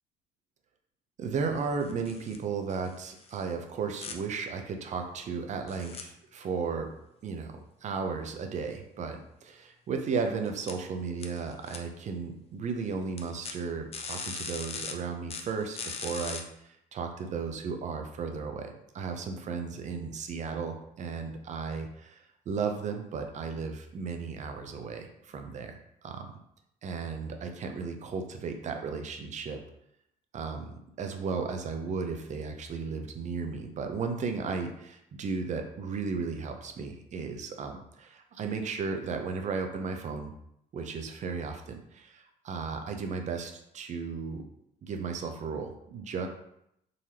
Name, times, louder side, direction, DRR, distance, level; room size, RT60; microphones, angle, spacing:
voice 1, 1.2-6.9 7.2-7.5 7.8-26.3 26.8-29.6 30.3-40.3 40.7-44.4 44.8-46.3, right 5 dB, 45° right, 5 dB, 0.6 m, -35 dB
sound 1, 1.8-2.4 2.7-3.4 4.0-4.1 5.7-6.0 10.4-10.7 11.2-11.8 13.2-13.5 13.9-14.9 15.3-16.4, left 5 dB, 35° left, 0.5 m, -39 dB
3.8 x 3.1 x 2.8 m, 0.78 s
cardioid pair, 110°, 17 cm